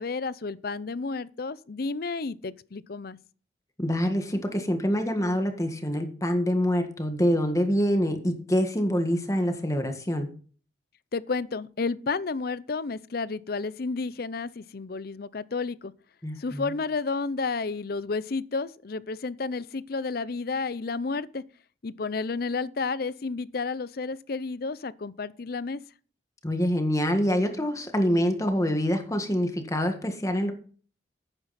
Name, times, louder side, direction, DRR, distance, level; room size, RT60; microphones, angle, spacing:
voice 1, 0.0-3.2 11.1-15.9 16.4-21.4 21.8-25.8, left 4 dB, 55° left, 0.6 m, -31 dB
voice 2, 3.8-10.3 16.2-16.7 26.4-30.5, equal, 20° left, 1.7 m, -26 dB
12.0 x 9.0 x 4.2 m
head